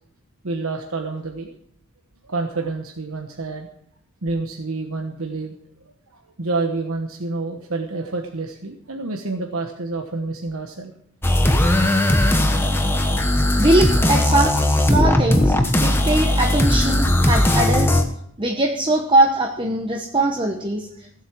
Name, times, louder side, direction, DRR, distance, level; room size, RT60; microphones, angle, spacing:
voice 1, 0.4-1.5 2.3-3.7 4.2-5.6 6.1-10.9, right 3 dB, 75° right, 3 dB, 1.2 m, -28 dB
sound 1, 11.2-18.0, left 1 dB, 10° left, 1.1 m, -18 dB
voice 2, 13.6-14.6 14.8-15.5 15.8-18.0 18.4-21.2, right 2 dB, 20° right, 2 dB, 1.0 m, -21 dB
16.5 x 8.1 x 6.2 m, 0.71 s
head